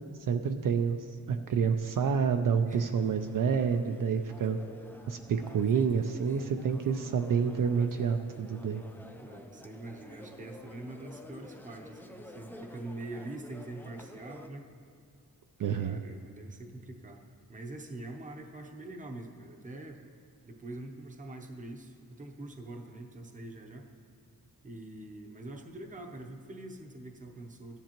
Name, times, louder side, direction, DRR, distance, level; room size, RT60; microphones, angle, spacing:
voice 1, 0.3-1.0 1.3-4.6 5.1-8.8 15.6-16.0, right 6 dB, 60° right, 6 dB, 0.5 m, -28 dB
sound 1, 2.9-14.5, left 1 dB, 5° left, 0.4 m, -50 dB
voice 2, 9.2-14.7 15.8-20.0 20.4-23.9 24.6-27.8, right 2 dB, 20° right, 3 dB, 0.7 m, -44 dB
14.5 x 10.0 x 3.0 m, 2.5 s
wide cardioid pair, 160°, 36 cm